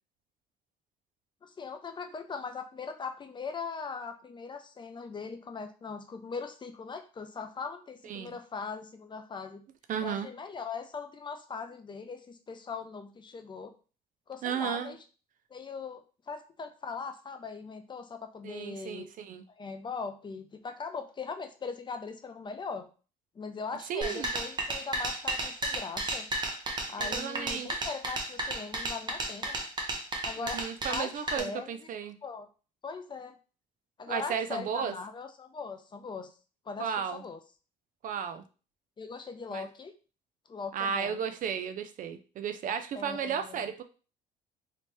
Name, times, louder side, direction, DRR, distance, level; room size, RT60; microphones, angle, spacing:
voice 1, 1.4-9.6 10.0-13.7 14.3-15.0 15.5-19.1 19.6-22.9 23.4-26.3 26.9-29.6 30.2-30.6 30.9-31.7 32.2-32.5 32.8-33.4 34.0-36.3 36.7-37.4 39.0-39.9 40.5-41.2 42.9-43.6, left 5 dB, 25° left, 8 dB, 0.5 m, -40 dB
voice 2, 8.0-8.4 9.9-10.3 14.4-15.0 18.4-19.4 23.9-24.3 27.0-27.8 30.4-32.2 34.1-34.9 36.8-37.2 38.0-38.4 39.5-39.7 40.7-43.8, right 7 dB, 50° right, 10 dB, 0.4 m, -34 dB
sound 1, 24.0-31.4, right 2 dB, 25° right, 0.8 m, -33 dB
3.1 x 2.9 x 3.3 m, 0.36 s
cardioid pair, 110°, 17 cm